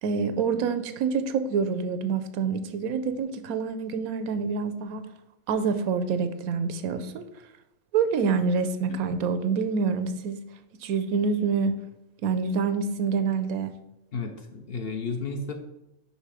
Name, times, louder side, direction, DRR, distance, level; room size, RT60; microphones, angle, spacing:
voice 1, 0.0-5.1 5.5-7.3 7.9-10.4 10.8-11.7 12.2-13.7, right 5 dB, 85° right, 11 dB, 1.1 m, -26 dB
voice 2, 14.1-15.5, left 4 dB, 55° left, 5 dB, 0.7 m, -33 dB
5.4 x 5.1 x 5.0 m, 0.88 s
omnidirectional pair, 1.5 m